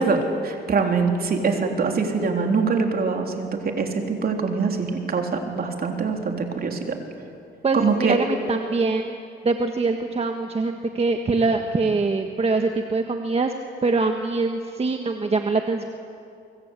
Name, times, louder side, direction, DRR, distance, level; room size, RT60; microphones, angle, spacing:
voice 1, 0.0-7.0 7.7-8.2, right 4 dB, 50° right, 3 dB, 3.7 m, -23 dB
voice 2, 7.6-9.2 9.4-13.5 13.8-15.8, right 3 dB, 30° right, 5 dB, 1.5 m, -23 dB
24.0 x 24.0 x 8.3 m, 2.5 s
cardioid pair, 90°, 20 cm